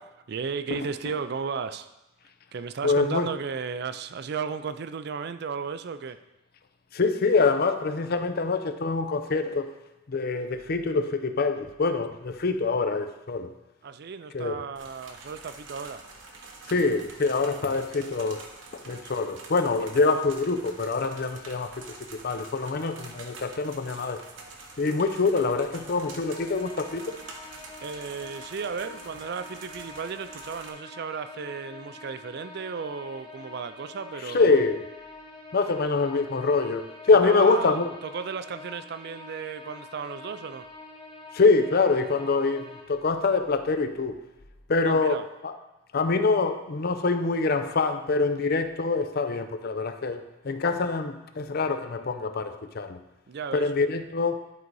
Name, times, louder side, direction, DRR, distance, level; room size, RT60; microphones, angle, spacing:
voice 1, 0.3-1.9 2.5-6.2 13.8-16.0 27.8-34.6 37.2-40.7 44.8-45.2 53.3-53.7, right 5 dB, 60° right, 12 dB, 0.4 m, -34 dB
voice 2, 2.8-3.3 6.9-9.7 10.1-13.5 14.3-14.6 16.7-18.5 18.7-24.2 24.8-27.2 34.3-34.8 35.5-37.9 41.3-44.2 44.7-45.2 45.4-45.6 45.9-53.0 53.5-54.4, left 3 dB, 55° left, 8 dB, 0.6 m, -25 dB
sound 1, 14.8-30.7, right 3 dB, 80° right, 1.0 m, -46 dB
sound 2, 26.3-42.8, left 3 dB, 30° left, 1.2 m, -46 dB
11.0 x 4.0 x 4.7 m, 0.96 s
head